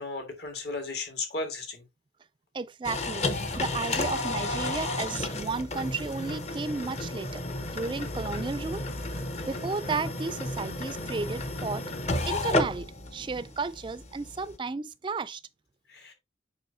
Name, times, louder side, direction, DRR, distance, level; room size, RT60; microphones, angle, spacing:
voice 1, 0.0-1.8 3.9-4.0 15.9-16.1, left 3 dB, 60° left, 1.9 m, -35 dB
voice 2, 2.5-3.3 3.6-8.8 9.5-11.8 12.3-15.4, right 4 dB, 25° right, 0.3 m, -33 dB
sound 1, 2.8-14.6, left 2 dB, 35° left, 0.8 m, -32 dB
7.5 x 5.4 x 2.7 m
head